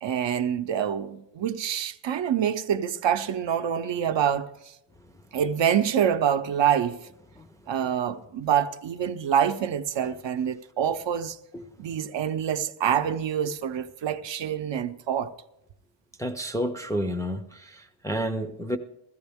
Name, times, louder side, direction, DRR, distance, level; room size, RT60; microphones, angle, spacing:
voice 1, 0.0-4.7 5.3-7.0 7.7-11.4 11.8-15.3, right 9 dB, 60° right, 0.7 m, -26 dB
voice 2, 16.2-17.7 18.0-18.8, equal, 5° left, 0.4 m, -29 dB
15.0 x 15.0 x 3.5 m
wide cardioid pair, 160°, 49 cm